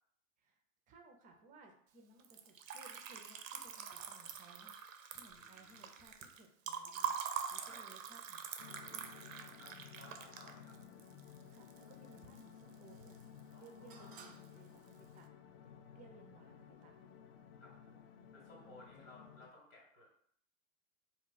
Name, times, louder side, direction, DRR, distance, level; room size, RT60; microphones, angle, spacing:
voice 1, 0.9-8.5 8.9-9.0 11.5-13.2 13.6-15.6 15.9-16.9 18.6-18.8, right 3 dB, 20° right, 3 dB, 0.5 m, -61 dB
Liquid, 2.2-12.4 12.7-13.4 13.7-14.4, right 7 dB, 90° right, 0.5 m, -45 dB
voice 2, 5.3-5.9 7.6-7.8 9.6-10.8 13.5-14.4 17.6-17.7 18.3-20.1, left 2 dB, 80° left, -3 dB, 1.5 m, -59 dB
sound 1, 8.6-19.5, left 8 dB, 50° left, 0.5 m, -56 dB
2.4 x 2.3 x 3.9 m, 0.64 s
hypercardioid pair, 110°, 39 cm